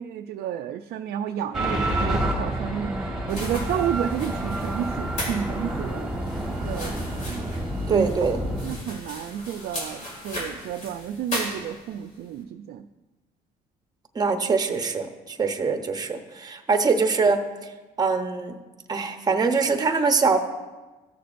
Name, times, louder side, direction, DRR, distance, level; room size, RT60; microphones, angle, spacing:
voice 1, 0.0-7.5 7.9-8.1 8.4-12.9, right 9 dB, 70° right, 5 dB, 0.4 m, -31 dB
sound 1, 1.5-8.8, right 1 dB, 5° right, 1.4 m, -29 dB
sound 2, 3.3-12.1, left 1 dB, 45° left, 2.7 m, -37 dB
voice 2, 7.9-8.4 14.1-17.4 18.0-18.6 18.9-20.4, right 4 dB, 25° right, 6 dB, 0.8 m, -23 dB
14.5 x 6.8 x 2.5 m, 1.2 s
cardioid pair, 110°, 17 cm